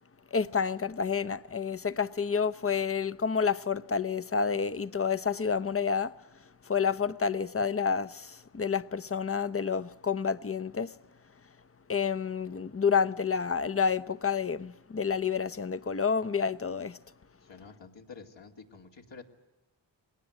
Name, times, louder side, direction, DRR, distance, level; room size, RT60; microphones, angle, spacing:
voice 1, 0.3-11.0 11.9-17.0, left 6 dB, 30° left, 0.8 m, -29 dB
voice 2, 17.5-19.2, left 5 dB, 75° left, 2.7 m, -49 dB
21.5 x 18.5 x 10.0 m
cardioid pair, 70°, 45 cm